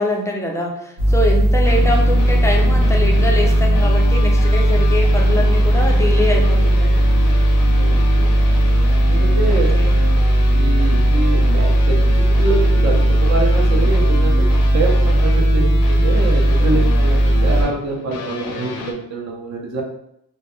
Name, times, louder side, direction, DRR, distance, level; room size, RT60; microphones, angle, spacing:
voice 1, 0.0-7.0 9.5-10.0, left 1 dB, 10° left, -1 dB, 0.4 m, -24 dB
sound 1, 1.0-17.6, right 1 dB, 85° right, 0.7 m, -15 dB
sound 2, 1.6-18.9, left 4 dB, 70° left, 0.5 m, -30 dB
voice 2, 7.7-8.3 9.1-9.8 10.5-19.8, right 3 dB, 45° right, 0 dB, 0.6 m, -25 dB
2.2 x 2.1 x 3.0 m, 0.76 s
cardioid pair, 105°, 38 cm